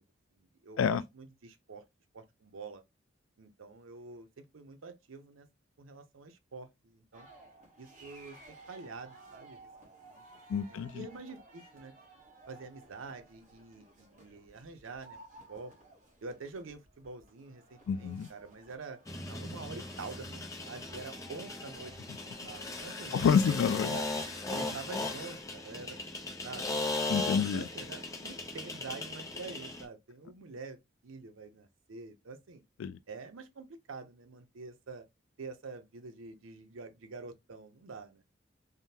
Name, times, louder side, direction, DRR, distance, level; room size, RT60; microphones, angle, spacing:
voice 1, 0.4-1.8 2.1-2.8 3.4-5.5 5.8-7.3 7.8-10.2 10.6-11.9 12.5-15.7 16.2-19.0 19.3-21.9 22.2-24.1 24.5-26.0 26.4-26.7 27.5-32.6 33.1-35.1 35.4-38.2, right 4 dB, 85° right, 0.6 m, -47 dB
sound 1, 7.1-24.7, right 2 dB, 40° right, 1.1 m, -57 dB
voice 2, 10.5-11.1 17.9-18.3 23.1-23.9 27.1-27.6 32.8-33.0, left 7 dB, 80° left, 0.3 m, -28 dB
sound 2, 19.1-29.9, left 2 dB, 15° left, 0.5 m, -38 dB
3.5 x 2.1 x 2.7 m
head